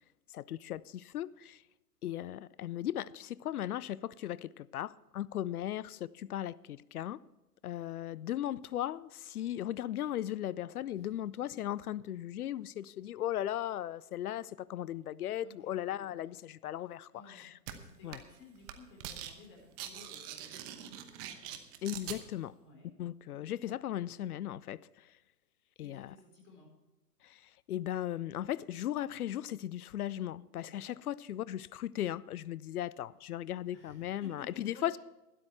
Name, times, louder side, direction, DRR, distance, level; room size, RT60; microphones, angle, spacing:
voice 1, 0.3-1.6 2.0-7.2 7.6-17.5 18.0-18.2 21.8-22.6 23.0-25.1 25.8-26.1 27.2-35.0, left 12 dB, 65° left, 0.6 m, -37 dB
voice 2, 15.4-16.1 17.1-21.4 22.6-22.9 25.8-26.7 30.5-31.0 33.7-35.0, left 3 dB, 25° left, 4.5 m, -57 dB
sound 1, 17.7-17.8 18.1-18.4 18.6-19.3 19.6-22.2, right 11 dB, 25° right, 0.9 m, -43 dB
12.5 x 12.0 x 4.5 m
hypercardioid pair, 135°, 48 cm